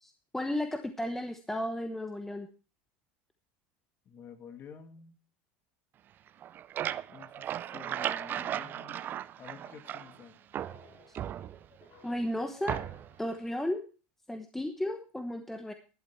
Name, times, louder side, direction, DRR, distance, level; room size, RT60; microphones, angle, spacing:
voice 1, 0.0-2.5 12.0-12.8 13.2-13.8 14.3-15.7, left 1 dB, 5° left, 7 dB, 1.0 m, -34 dB
voice 2, 4.1-5.2 7.1-9.0 9.4-10.4, left 7 dB, 40° left, 7 dB, 2.2 m, -50 dB
sound 1, 6.3-10.2 10.5-11.9 12.7-13.2, right 11 dB, 35° right, 0.5 m, -36 dB
sound 2, 7.5-13.7, left 6 dB, 55° left, 4.6 m, -59 dB
11.5 x 11.5 x 4.5 m, 0.37 s
supercardioid pair, 120°, 5 cm